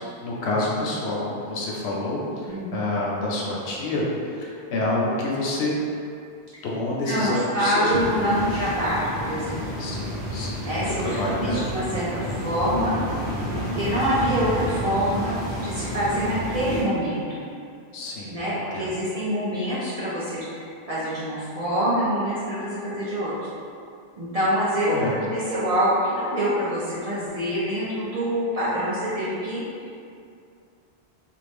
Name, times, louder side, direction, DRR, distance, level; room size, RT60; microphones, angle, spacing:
voice 1, 0.2-4.0 4.4-5.7 6.6-8.7 9.8-11.6 17.9-18.4 18.7-18.9 24.9-25.1, left 2 dB, 80° left, -4 dB, 0.8 m, -28 dB
voice 2, 7.1-9.8 10.6-12.9 13.6-17.4 18.3-23.3 24.2-24.9 25.2-29.6, equal, 45° right, -10 dB, 0.5 m, -26 dB
sound 1, 7.9-16.8, equal, 70° right, 1.1 m, -30 dB
2.5 x 2.0 x 3.3 m, 2.4 s
omnidirectional pair, 1.1 m